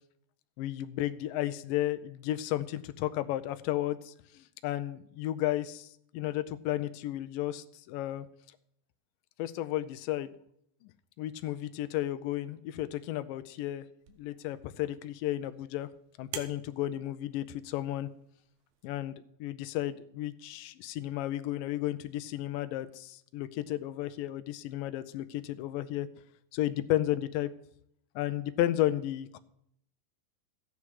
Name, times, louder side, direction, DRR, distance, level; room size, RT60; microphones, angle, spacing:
voice 1, 0.6-8.3 9.4-10.3 10.8-10.9 11.2-13.9 14.2-15.9 16.2-18.1 18.8-26.1 26.5-27.5 28.2-29.4, left 14 dB, 80° left, 11 dB, 2.3 m, -33 dB
sound 1, 14.0-19.0, right 8 dB, 85° right, 2.8 m, -50 dB
14.0 x 9.6 x 4.8 m, 0.71 s
omnidirectional pair, 4.1 m